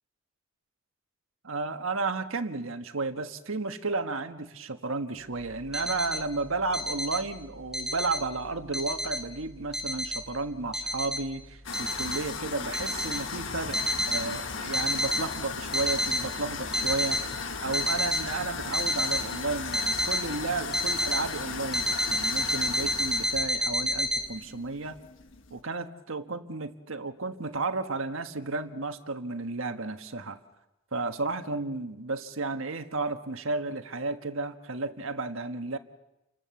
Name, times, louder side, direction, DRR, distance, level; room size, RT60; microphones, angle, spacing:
voice 1, 1.4-13.8 14.1-17.3 17.6-25.0 25.5-30.4 30.9-35.8, right 3 dB, 80° right, 8 dB, 1.4 m, -33 dB
sound 1, 5.5-6.2 6.7-7.2 7.6-8.2 8.7-9.2 9.7-10.2 10.7-11.2 11.7-12.2 12.7-13.2 13.7-14.2 14.7-15.2 15.6-16.2 16.7-17.2 17.7-18.2 18.7-19.2 19.7-20.2 20.7-21.2 21.7-24.2, equal, ahead, 4.3 m, -29 dB
sound 2, 11.6-25.6, left 5 dB, 65° left, 1.4 m, -36 dB
29.5 x 25.0 x 7.1 m, 0.97 s
head